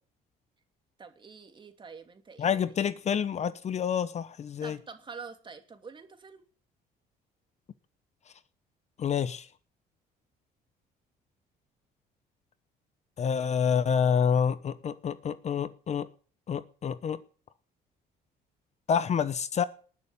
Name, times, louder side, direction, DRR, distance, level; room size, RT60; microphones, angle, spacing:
voice 1, 1.0-2.5 4.6-6.4, right 5 dB, 30° right, 2.8 m, -46 dB
voice 2, 2.4-4.8 9.0-9.5 13.2-16.1 16.5-17.2 18.9-19.6, left 7 dB, 40° left, 0.9 m, -28 dB
19.5 x 6.9 x 9.7 m
cardioid pair, 110°, 17 cm